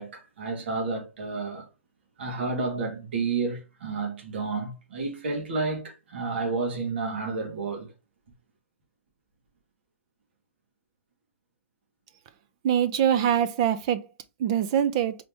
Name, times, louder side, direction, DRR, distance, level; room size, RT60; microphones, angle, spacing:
voice 1, 0.0-1.7 2.2-7.9, right 4 dB, 60° right, 1.6 m, -31 dB
voice 2, 12.6-14.0 14.4-15.2, right 9 dB, 25° right, 0.3 m, -23 dB
4.1 x 2.8 x 3.4 m
hypercardioid pair, 180°, 7 cm